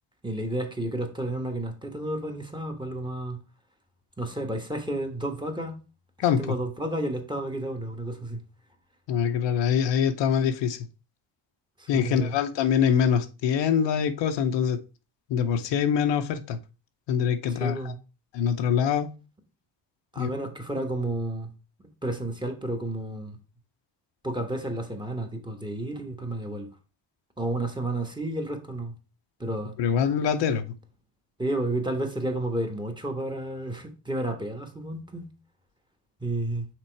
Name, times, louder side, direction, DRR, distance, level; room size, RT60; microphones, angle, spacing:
voice 1, 0.2-3.4 4.2-5.8 6.4-8.4 11.8-12.3 17.5-17.9 20.1-21.5 22.0-23.4 24.2-26.7 27.4-28.9 29.4-29.8 31.4-35.3 36.2-36.7, right 1 dB, 10° right, 1.2 m, -31 dB
voice 2, 9.1-10.9 11.9-14.8 15.3-16.6 17.1-17.8 18.3-19.1 20.2-20.3 29.8-30.7, left 7 dB, 85° left, 0.9 m, -24 dB
6.0 x 3.8 x 4.6 m
cardioid pair, 120°, 43 cm